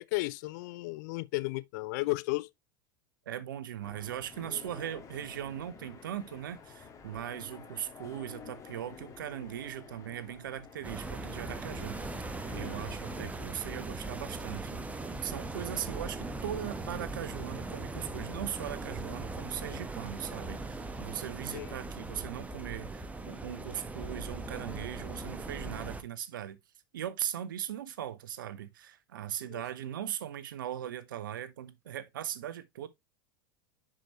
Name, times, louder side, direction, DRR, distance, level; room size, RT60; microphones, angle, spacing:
voice 1, 0.1-2.5 21.5-21.8 29.5-29.6, left 21 dB, 55° left, 0.6 m, -33 dB
voice 2, 3.3-12.2 12.5-14.8 15.2-26.6 26.9-32.9, right 10 dB, 70° right, 1.0 m, -39 dB
sound 1, 3.8-13.3, left 6 dB, 25° left, 2.2 m, -50 dB
sound 2, 10.8-26.0, right 2 dB, 10° right, 1.2 m, -39 dB
10.0 x 5.0 x 3.1 m
figure-of-eight pair, 80°, 12 cm